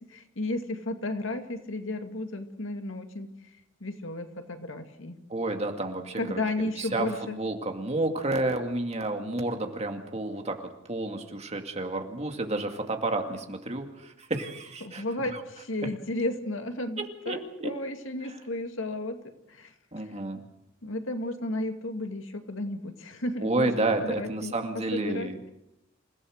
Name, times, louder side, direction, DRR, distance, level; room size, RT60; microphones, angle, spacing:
voice 1, 0.0-3.4 3.8-5.2 6.1-7.4 14.8-20.1 20.8-23.7 24.0-24.5 24.9-25.3, left 2 dB, 75° left, 6 dB, 2.3 m, -33 dB
voice 2, 5.3-6.4 6.8-15.0 15.3-15.4 17.0-17.7 19.9-20.4 23.4-25.4, right 2 dB, 35° right, 4 dB, 2.3 m, -30 dB
28.0 x 16.0 x 6.6 m, 0.86 s
head